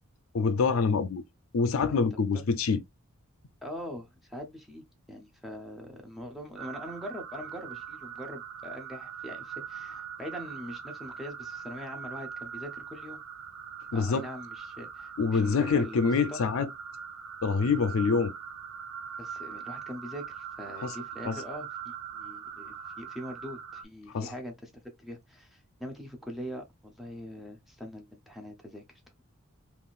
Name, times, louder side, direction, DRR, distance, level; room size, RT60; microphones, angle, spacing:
voice 1, 0.3-1.2 1.5-2.8 13.9-14.3 15.2-16.7 17.4-18.3 20.8-20.9 21.3-21.4 24.1-24.3, left 5 dB, 65° left, 0.4 m, -26 dB
voice 2, 3.6-13.2 13.9-16.4 19.2-29.2, equal, ahead, 0.7 m, -42 dB
sound 1, 6.6-23.8, right 7 dB, 75° right, 0.6 m, -42 dB
3.5 x 2.4 x 2.4 m
head